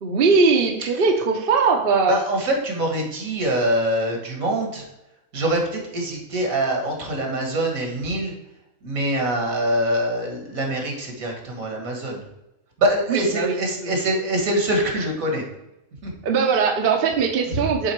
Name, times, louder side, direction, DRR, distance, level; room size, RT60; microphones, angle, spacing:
voice 1, 0.0-2.2 13.1-13.6 16.2-17.9, right 5 dB, 50° right, 3 dB, 0.9 m, -20 dB
voice 2, 2.1-4.8 5.3-8.3 8.8-12.2 12.8-15.4 16.0-16.1 17.6-17.7, right 1 dB, 75° right, 1 dB, 1.9 m, -24 dB
7.3 x 3.8 x 4.5 m, 0.92 s
omnidirectional pair, 1.5 m